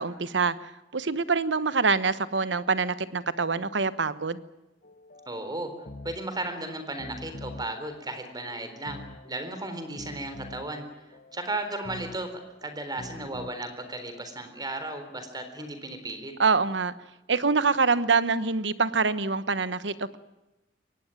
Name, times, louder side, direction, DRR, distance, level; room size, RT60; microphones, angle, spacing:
voice 1, 0.0-4.4 16.4-16.9 17.3-20.2, right 4 dB, 85° right, 15 dB, 1.2 m, -25 dB
sound 1, 4.8-13.5, left 1 dB, 50° left, 1.3 m, -46 dB
voice 2, 5.3-5.7 6.0-9.0 9.3-16.3, right 2 dB, 25° right, 8 dB, 3.8 m, -35 dB
23.0 x 18.5 x 9.0 m, 1.0 s
head